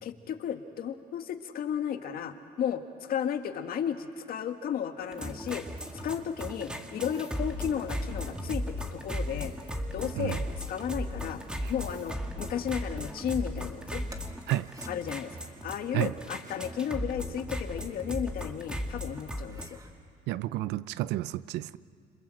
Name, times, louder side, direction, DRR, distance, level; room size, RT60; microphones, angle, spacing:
voice 1, 0.0-9.5 9.9-11.4 11.7-14.0 14.9-19.8, left 8 dB, 60° left, 1.8 m, -34 dB
sound 1, 5.0-19.7, equal, 5° right, 2.3 m, -36 dB
sound 2, 7.1-14.4, right 1 dB, 60° right, 4.0 m, -57 dB
sound 3, 14.1-14.9 16.0-16.7 17.6-18.4 18.8-18.9 19.3-19.9, right 2 dB, 20° right, 2.2 m, -54 dB
voice 2, 20.3-21.8, right 16 dB, 85° right, 0.6 m, -30 dB
27.5 x 26.5 x 7.8 m
cardioid pair, 110°, 17 cm